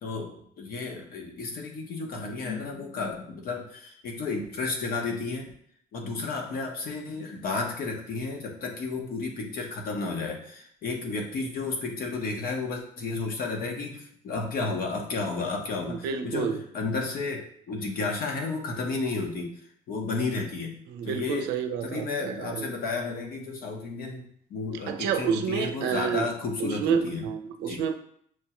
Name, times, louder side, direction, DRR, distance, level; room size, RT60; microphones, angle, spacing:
voice 1, 0.0-5.5 5.9-19.5 19.9-20.7 21.0-21.5 21.8-27.3 27.7-27.8, left 3 dB, 60° left, 2 dB, 0.9 m, -32 dB
voice 2, 15.9-16.6 20.9-22.7 24.9-26.3 26.6-27.9, right 7 dB, 90° right, 7 dB, 0.5 m, -29 dB
6.2 x 2.3 x 2.9 m, 0.64 s
cardioid pair, 110°, 17 cm